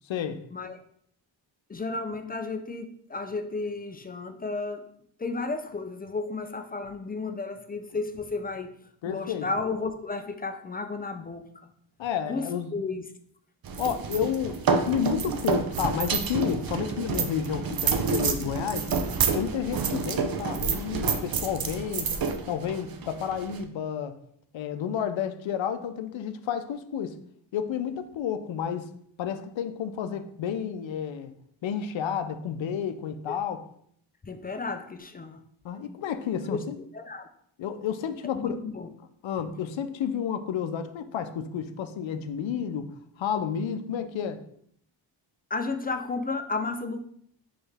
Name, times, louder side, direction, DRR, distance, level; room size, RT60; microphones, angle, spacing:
voice 1, 0.1-0.4 9.0-9.5 12.0-12.7 13.8-18.9 19.3-22.1 22.5-24.2 24.5-27.2 27.5-28.9 29.2-31.3 31.6-33.6 35.6-36.8 37.6-38.6 39.2-42.9 43.2-44.4, left 8 dB, 70° left, 0.6 m, -31 dB
voice 2, 1.7-4.8 5.2-8.7 9.0-11.7 12.3-13.0 34.2-35.4 36.5-36.6 36.9-37.3 38.2-38.9 45.5-47.0, left 3 dB, 20° left, 0.3 m, -33 dB
sound 1, 13.6-23.6, right 5 dB, 50° right, 0.6 m, -28 dB
4.4 x 3.3 x 3.4 m
cardioid pair, 85°, 47 cm